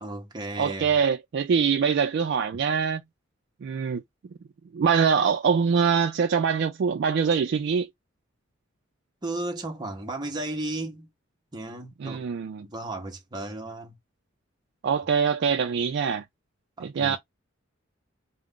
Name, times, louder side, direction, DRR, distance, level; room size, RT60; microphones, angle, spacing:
voice 1, 0.0-0.9 9.2-11.1 11.5-12.2 12.6-13.9 16.8-17.2, right 2 dB, 20° right, 0.7 m, -34 dB
voice 2, 0.6-3.0 3.6-4.0 4.7-7.9 12.0-12.7 14.8-16.2 16.8-17.2, right 6 dB, 60° right, 0.3 m, -24 dB
2.4 x 2.0 x 3.5 m
head